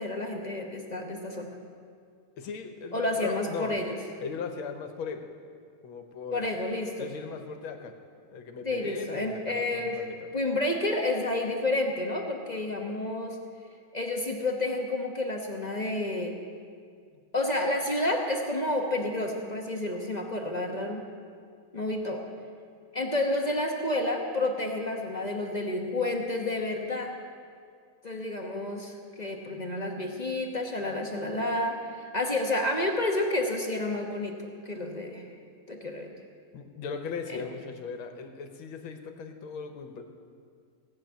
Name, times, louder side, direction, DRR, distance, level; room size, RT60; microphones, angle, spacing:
voice 1, 0.0-1.5 2.9-4.0 6.3-7.1 8.6-10.0 10.3-13.4 13.9-16.4 17.3-21.0 21.7-22.2 22.9-27.1 28.0-34.3 34.6-35.3 35.7-36.1 37.3-37.4, left 2 dB, 30° left, 1 dB, 0.8 m, -30 dB
voice 2, 2.4-3.8 4.2-5.3 5.8-6.5 7.0-8.0 8.3-10.3 17.1-17.2 36.5-40.0, left 5 dB, 80° left, 6 dB, 1.9 m, -38 dB
17.0 x 7.1 x 9.1 m, 2.2 s
omnidirectional pair, 2.3 m